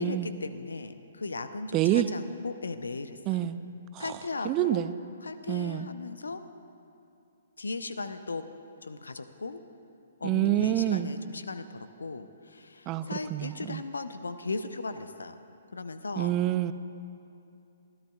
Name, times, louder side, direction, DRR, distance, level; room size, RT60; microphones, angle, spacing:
voice 1, 0.0-3.4 4.0-4.8 5.2-6.4 7.6-8.5 8.8-9.6 10.2-15.4 15.7-16.3, left 3 dB, 75° left, 11 dB, 0.7 m, -37 dB
voice 2, 1.7-2.1 3.3-3.6 3.9-4.0 4.4-4.9 5.5-5.9 10.2-11.1 12.9-13.8 16.2-16.7, right 13 dB, 25° right, 13 dB, 0.4 m, -27 dB
24.5 x 13.0 x 2.4 m, 2.7 s
figure-of-eight pair, 125°, 0 cm